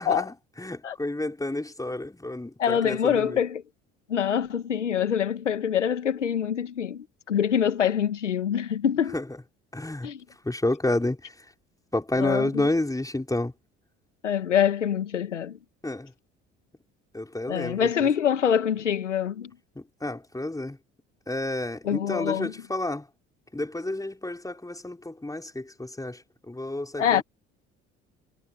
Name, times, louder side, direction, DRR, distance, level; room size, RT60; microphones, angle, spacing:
voice 1, 0.0-3.4 9.1-9.2 9.7-10.1 10.4-11.3 11.9-13.5 15.8-16.1 17.1-17.9 20.0-20.8 21.3-23.1 23.5-27.2, left 2 dB, 10° left, 5.8 m, -30 dB
voice 2, 2.6-3.6 4.1-9.2 10.0-10.2 12.2-12.7 14.2-15.6 17.5-19.5 21.8-22.5 27.0-27.2, left 8 dB, 90° left, 2.0 m, -25 dB
figure-of-eight pair, 55°, 35 cm